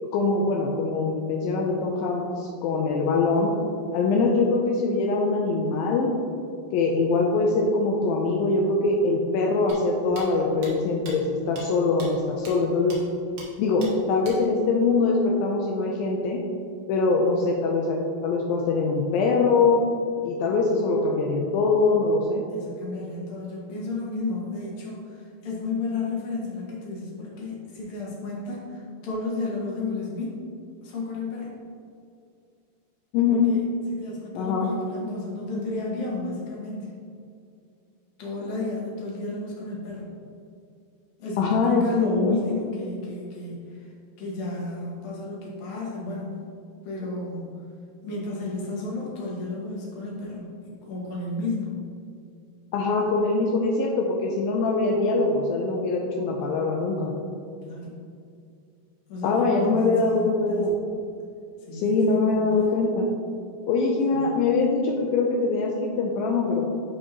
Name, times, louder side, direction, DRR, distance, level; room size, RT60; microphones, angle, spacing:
voice 1, 0.0-3.5 3.9-6.1 6.7-13.0 13.6-16.4 16.9-19.8 20.2-22.4 33.1-33.5 34.4-34.7 41.4-42.4 52.7-57.1 59.2-60.8 61.7-63.1 63.7-66.7, left 3 dB, 80° left, -1 dB, 2.2 m, -23 dB
sound 1, 9.7-9.8 10.2-10.3 10.6-10.7 11.1-11.2 11.6-11.7 12.0-12.1 12.5-12.6 12.9-13.0 13.4-13.5 13.8-13.9 14.2-14.4, right 2 dB, 55° right, 1.9 m, -40 dB
voice 2, 22.5-30.4 30.8-31.5 33.3-36.9 38.2-40.1 41.2-43.9 44.2-46.4 46.8-47.5 48.0-50.5 50.9-51.7 57.6-57.9 59.1-60.6 61.7-62.7 64.1-64.3, left 3 dB, 55° left, -5 dB, 2.7 m, -32 dB
11.0 x 5.1 x 3.0 m, 2.4 s
omnidirectional pair, 4.5 m